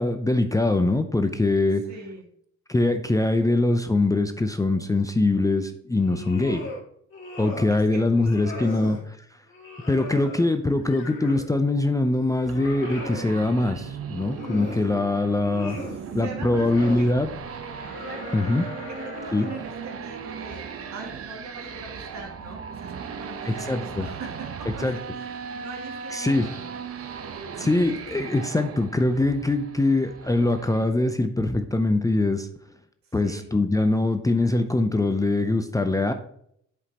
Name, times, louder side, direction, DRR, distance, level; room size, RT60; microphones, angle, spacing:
voice 1, 0.0-1.8 2.7-6.7 7.4-9.0 9.9-15.8 16.1-17.3 18.3-18.6 19.3-19.5 23.5-24.0 24.8-25.0 26.1-26.5 27.6-32.5 33.1-36.1, left 2 dB, 10° left, 8 dB, 0.5 m, -23 dB
voice 2, 1.9-2.2 7.8-9.0 15.6-17.1 17.8-18.4 18.8-24.9 25.1-26.9 33.0-33.5, right 3 dB, 65° right, 2 dB, 1.9 m, -42 dB
sound 1, 5.9-6.8 7.1-7.8 8.2-9.0 9.5-11.5 12.0-13.4 14.0-14.9 15.3-16.0 16.5-17.1 17.6-19.8, left 2 dB, 40° left, 2.1 m, -38 dB
sound 2, 12.4-30.8, right 6 dB, 50° right, 0.8 m, -38 dB
8.0 x 5.2 x 2.9 m, 0.70 s
cardioid pair, 90°, 30 cm